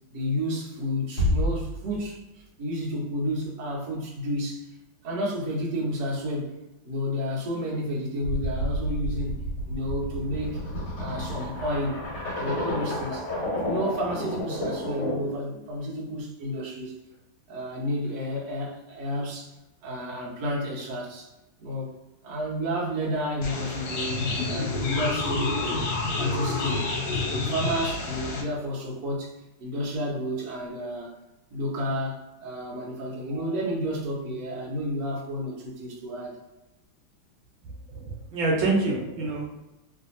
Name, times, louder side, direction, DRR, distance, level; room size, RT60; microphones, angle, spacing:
voice 1, 0.1-2.2 2.6-4.7 5.0-6.6 6.8-9.4 9.7-10.6 11.0-12.0 12.3-13.3 13.6-16.9 17.5-19.5 19.8-21.3 21.6-21.9 22.2-25.9 26.2-26.9 27.2-29.3 29.6-31.1 31.5-36.4, equal, 60° right, -4 dB, 1.2 m, -31 dB
Bass drum, 1.2-2.6, left 1 dB, 35° left, 1.4 m, -27 dB
sound 1, 8.2-15.4, equal, 60° left, 1.6 m, -31 dB
sound 2, 23.4-28.4, left 3 dB, 75° left, 1.5 m, -29 dB
voice 2, 37.9-39.5, right 3 dB, 75° right, -2 dB, 1.5 m, -27 dB
3.3 x 2.7 x 2.5 m, 1.0 s
omnidirectional pair, 2.2 m